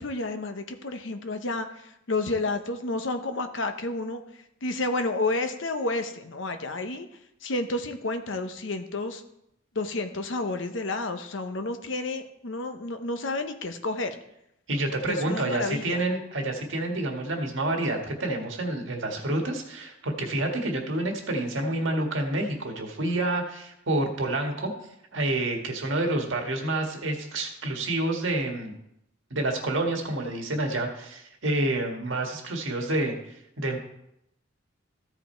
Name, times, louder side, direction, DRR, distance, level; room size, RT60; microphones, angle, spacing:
voice 1, 0.0-4.2 4.6-7.1 7.4-9.2 9.7-14.2 15.1-16.0, left 2 dB, 70° left, 7 dB, 0.9 m, -30 dB
voice 2, 14.7-24.7 25.1-28.7 29.3-33.1 33.6-33.8, right 2 dB, 75° right, 2 dB, 1.7 m, -28 dB
14.5 x 5.0 x 4.4 m, 0.80 s
head